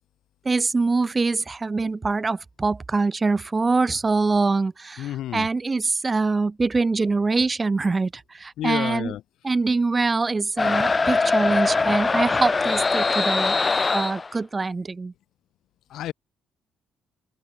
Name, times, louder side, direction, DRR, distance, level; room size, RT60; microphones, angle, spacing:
voice 1, 0.4-9.1 9.4-13.6 13.9-15.1, right 3 dB, 25° right, 0.8 m, -24 dB
voice 2, 5.0-5.5 8.6-9.2 15.9-16.1, left 12 dB, 80° left, 0.5 m, -30 dB
sound 1, 10.6-14.3, left 4 dB, 30° left, 0.8 m, -22 dB
open air
cardioid pair, 90°, 0 cm